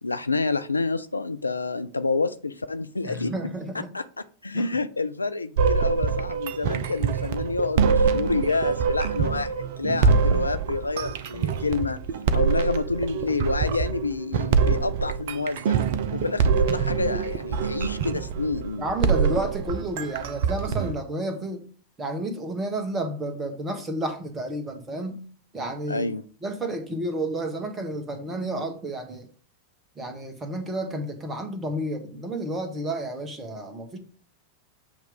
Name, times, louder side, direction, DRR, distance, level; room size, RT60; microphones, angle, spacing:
voice 1, 0.0-3.3 3.9-4.0 4.4-12.0 12.3-15.8 16.1-18.9 25.9-26.2, left 3 dB, 80° left, 0.4 m, -28 dB
voice 2, 3.0-3.9 4.5-4.7 18.8-21.7 22.0-25.2 25.5-26.1 26.4-29.3 30.0-34.0, right 1 dB, 20° right, 1.3 m, -31 dB
sound 1, 5.6-20.9, right 6 dB, 55° right, 0.6 m, -24 dB
7.4 x 3.0 x 5.1 m
figure-of-eight pair, 90°, 0 cm